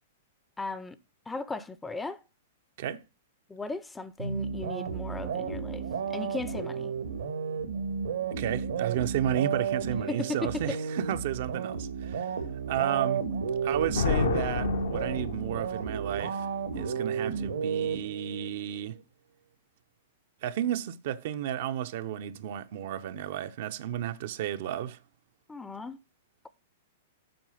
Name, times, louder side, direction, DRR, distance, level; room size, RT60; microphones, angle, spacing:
voice 1, 0.6-1.0 1.3-2.2 3.5-5.8 6.1-6.9 10.1-10.8 25.5-26.0, left 3 dB, 10° left, 0.6 m, -36 dB
sound 1, 4.2-18.5, right 6 dB, 80° right, 1.5 m, -32 dB
voice 2, 8.3-12.3 12.7-13.3 13.6-16.5 16.7-19.0 20.4-25.0, right 11 dB, 60° right, 0.7 m, -32 dB
Thunder, 13.6-15.9, left 6 dB, 80° left, 1.3 m, -31 dB
7.8 x 4.8 x 5.6 m
hypercardioid pair, 120°, 0 cm